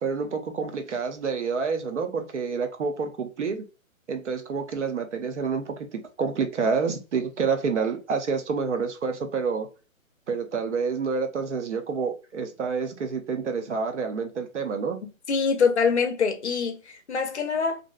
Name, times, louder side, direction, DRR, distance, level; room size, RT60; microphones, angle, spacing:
voice 1, 0.0-3.7 4.1-9.7 10.3-15.0, right 5 dB, 60° right, 0.5 m, -28 dB
voice 2, 15.3-17.8, left 5 dB, 55° left, 0.6 m, -24 dB
2.6 x 2.1 x 2.3 m
hypercardioid pair, 165°, 42 cm